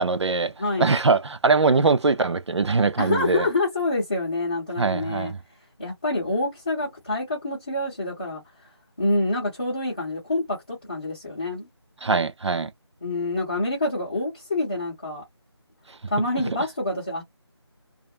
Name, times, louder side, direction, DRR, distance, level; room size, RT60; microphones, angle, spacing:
voice 1, 0.0-0.5 0.8-3.5 4.8-5.4 12.0-12.7, right 4 dB, 80° right, 0.5 m, -22 dB
voice 2, 0.6-1.0 3.0-5.3 5.8-8.4 9.0-11.7 13.0-15.2 16.1-17.2, left 2 dB, 20° left, 0.9 m, -27 dB
2.4 x 2.0 x 2.6 m
figure-of-eight pair, 175°, 14 cm